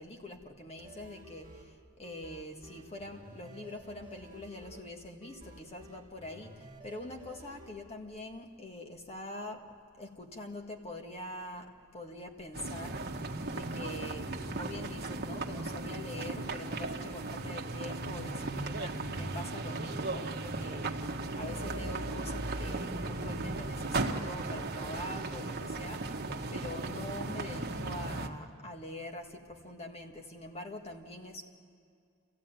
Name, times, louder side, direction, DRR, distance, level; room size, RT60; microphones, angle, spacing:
voice 1, 0.0-9.6 9.9-13.0 13.5-20.9 21.4-26.0 26.5-31.4, left 1 dB, 30° left, 3 dB, 1.7 m, -44 dB
sound 1, 0.8-7.7, right 1 dB, 20° right, 1.9 m, -53 dB
sound 2, 12.5-28.3, right 2 dB, 45° right, 1.2 m, -36 dB
27.5 x 15.0 x 8.9 m, 2.3 s
head